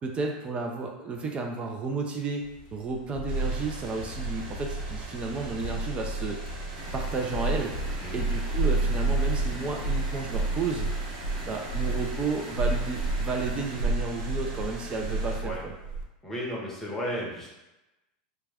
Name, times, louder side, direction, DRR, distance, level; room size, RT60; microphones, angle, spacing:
voice 1, 0.0-6.4 6.9-7.7 8.1-10.9 11.5-15.7, right 4 dB, 25° right, 2 dB, 0.4 m, -32 dB
sound 1, 2.6-16.0, right 2 dB, 65° left, 0.5 m, -31 dB
sound 2, 3.3-15.4, right 2 dB, 60° right, 0.7 m, -44 dB
sound 3, 6.7-13.9, right 2 dB, 45° right, 1.1 m, -44 dB
voice 2, 16.2-17.5, equal, 10° left, -5 dB, 0.8 m, -33 dB
2.2 x 2.2 x 3.3 m, 0.96 s
supercardioid pair, 120°, 4 cm